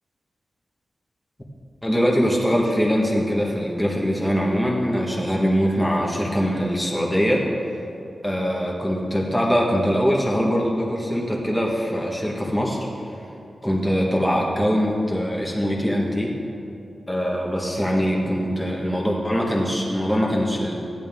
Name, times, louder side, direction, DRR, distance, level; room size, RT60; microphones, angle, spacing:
voice 1, 1.8-7.5 8.2-12.9 13.6-16.4 17.1-20.7, equal, 5° left, -3 dB, 1.5 m, -22 dB
15.0 x 11.0 x 3.7 m, 2.8 s
wide cardioid pair, 105°, 0 cm